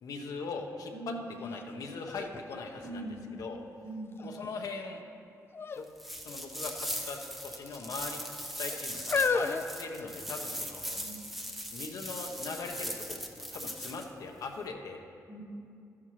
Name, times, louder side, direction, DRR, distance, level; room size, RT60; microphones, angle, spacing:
voice 1, 0.0-0.9 1.4-3.1 3.4-3.6 4.2-5.0 5.7-5.8 6.2-7.2 7.5-8.2 8.6-11.1 11.7-12.9 13.5-15.0, left 4 dB, 75° left, 2 dB, 0.9 m, -40 dB
voice 2, 0.9-1.5 2.8-3.4 3.8-4.2 11.0-11.3 15.3-15.4, right 1 dB, 40° right, -3 dB, 2.7 m, -42 dB
sound 1, 1.5-1.6 2.1-3.6 4.2-4.7 5.5-5.9 6.2-6.3 7.2-7.8 8.5-10.6 11.3-11.4, left 5 dB, 40° left, 0.4 m, -34 dB
sound 2, 6.0-14.1, equal, 5° right, 0.8 m, -39 dB
12.0 x 9.6 x 3.2 m, 2.5 s
cardioid pair, 95°, 6 cm